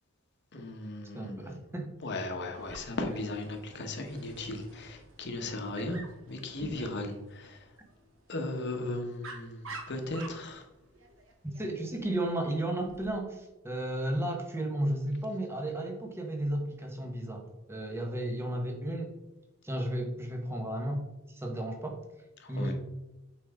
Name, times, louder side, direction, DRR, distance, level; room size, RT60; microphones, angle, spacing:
voice 1, 0.5-1.6 2.0-7.7 8.3-10.7 22.4-22.7, left 2 dB, 55° left, 4 dB, 1.1 m, -36 dB
voice 2, 1.1-1.9 11.6-19.1 19.6-21.0 21.3-22.0 22.5-22.7, right 1 dB, 10° right, 3 dB, 1.1 m, -33 dB
Dog, 2.5-13.1, right 3 dB, 65° right, 1.2 m, -50 dB
7.2 x 5.3 x 3.5 m, 0.98 s
head